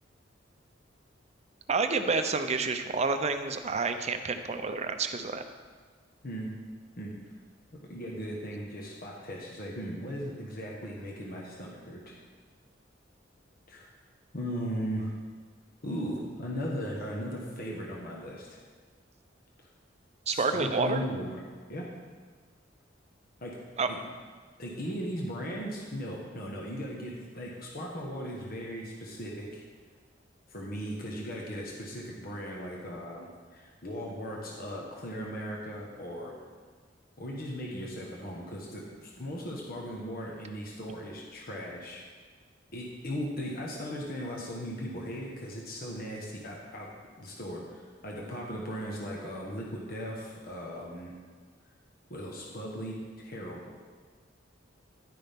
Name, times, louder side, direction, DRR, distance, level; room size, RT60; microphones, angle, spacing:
voice 1, 1.7-5.4 20.3-21.0 23.8-23.9, right 4 dB, 35° right, 8 dB, 0.6 m, -29 dB
voice 2, 7.7-12.1 13.7-13.9 14.3-15.1 15.8-18.6 20.3-21.4 21.7-21.9 23.4-23.6 23.9-24.0 24.6-29.6 30.5-36.3 37.2-42.0 42.7-46.9 47.2-51.1 52.1-53.7, equal, 50° left, -2 dB, 1.3 m, -37 dB
10.5 x 9.8 x 3.6 m, 1.5 s
head